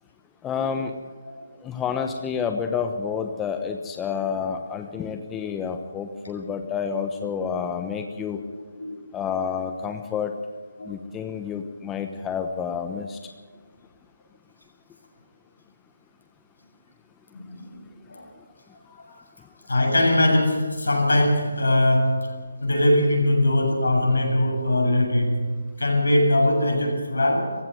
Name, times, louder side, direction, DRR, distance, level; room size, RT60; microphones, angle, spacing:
voice 1, 0.4-0.9 1.6-8.4 9.1-10.3 10.9-13.2, left 6 dB, 10° left, 6 dB, 1.0 m, -29 dB
voice 2, 8.5-8.9 10.8-10.9 17.3-17.8 18.1-18.3 19.7-22.3 22.6-27.6, left 1 dB, 80° left, 1 dB, 7.6 m, -21 dB
18.5 x 15.5 x 9.4 m, 1.4 s
figure-of-eight pair, 155°, 0 cm